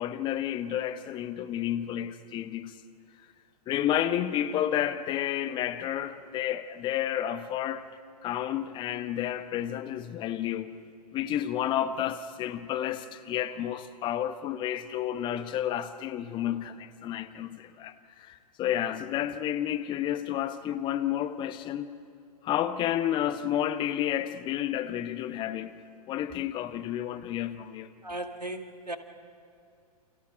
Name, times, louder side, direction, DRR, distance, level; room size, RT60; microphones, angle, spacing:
voice 1, 0.0-2.7 3.7-7.8 8.2-10.8 11.1-22.0 22.4-25.7 26.1-27.9, left 11 dB, 25° left, 1.1 m, -31 dB
voice 2, 28.0-29.0, right 1 dB, 85° right, 2.2 m, -36 dB
29.5 x 29.0 x 5.2 m
figure-of-eight pair, 110°, 20 cm